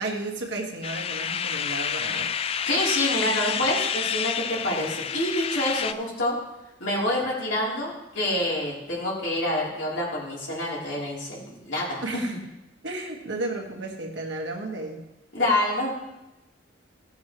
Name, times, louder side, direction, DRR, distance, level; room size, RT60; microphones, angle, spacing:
voice 1, 0.0-2.3 12.0-12.3 12.8-15.0, right 2 dB, 65° right, 1 dB, 1.7 m, -33 dB
sound 1, 0.8-5.9, left 7 dB, 30° left, 0.3 m, -29 dB
voice 2, 2.7-6.3 6.8-12.2 15.3-15.9, left 1 dB, 75° left, -5 dB, 3.4 m, -27 dB
15.5 x 7.4 x 3.1 m, 0.95 s
head